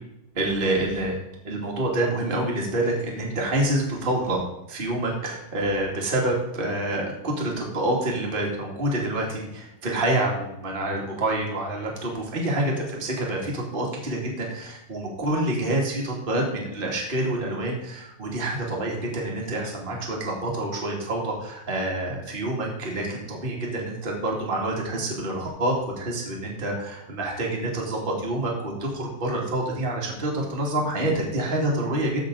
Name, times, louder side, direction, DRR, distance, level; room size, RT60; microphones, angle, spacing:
voice 1, 0.3-1.2 1.4-32.2, right 1 dB, 20° right, -2 dB, 1.9 m, -27 dB
15.0 x 6.1 x 3.9 m, 0.85 s
omnidirectional pair, 3.9 m